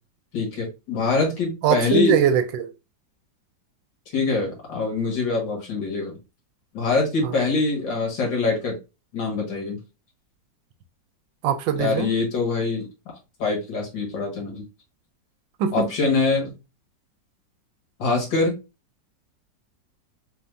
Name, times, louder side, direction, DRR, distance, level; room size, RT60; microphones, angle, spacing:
voice 1, 0.3-2.2 4.1-6.2 6.7-8.8 9.1-9.8 11.8-12.9 13.4-14.6 15.7-16.5 18.0-18.6, left 3 dB, 80° left, 2.2 m, -24 dB
voice 2, 1.6-2.7 7.2-7.3 11.4-12.1 15.6-15.9, right 7 dB, 85° right, 1.3 m, -21 dB
4.1 x 3.4 x 2.5 m
omnidirectional pair, 2.0 m